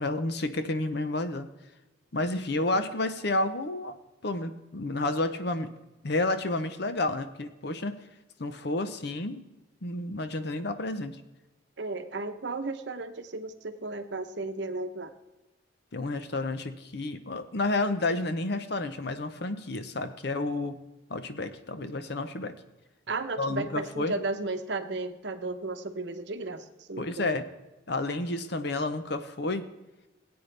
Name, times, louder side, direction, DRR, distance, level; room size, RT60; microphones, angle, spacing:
voice 1, 0.0-1.5 2.1-4.0 4.2-5.7 6.0-8.0 8.4-9.4 9.8-11.2 15.9-20.8 21.1-22.5 23.4-24.2 27.0-27.5 27.9-29.6, left 2 dB, 55° left, 10 dB, 0.8 m, -30 dB
voice 2, 11.8-15.1 23.1-27.4, right 3 dB, 60° right, 8 dB, 0.8 m, -34 dB
17.5 x 8.7 x 3.4 m, 1.1 s
head